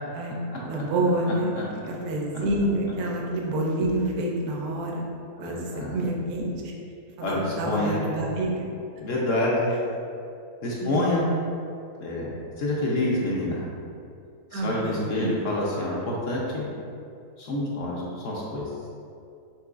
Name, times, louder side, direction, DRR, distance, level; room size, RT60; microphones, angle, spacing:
voice 1, 0.1-5.1 5.4-6.7 7.2-8.6 10.8-11.2 14.5-15.4, right 1 dB, 70° right, -1 dB, 1.1 m, -28 dB
voice 2, 5.4-6.0 7.2-8.0 9.0-9.8 10.6-11.2 12.0-13.6 14.5-16.7 17.4-18.6, left 1 dB, 65° left, -5 dB, 0.9 m, -27 dB
5.9 x 3.0 x 2.4 m, 2.5 s
omnidirectional pair, 1.6 m